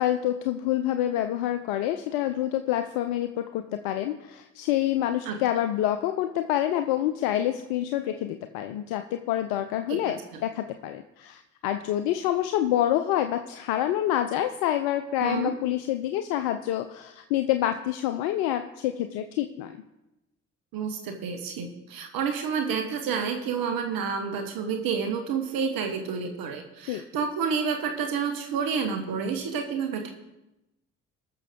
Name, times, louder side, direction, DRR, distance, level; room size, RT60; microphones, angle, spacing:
voice 1, 0.0-19.8 26.9-27.0, left 12 dB, 75° left, 9 dB, 0.6 m, -27 dB
voice 2, 15.2-15.5 20.7-30.1, right 6 dB, 65° right, 4 dB, 1.4 m, -29 dB
19.5 x 6.8 x 3.7 m, 0.96 s
hypercardioid pair, 45°, 38 cm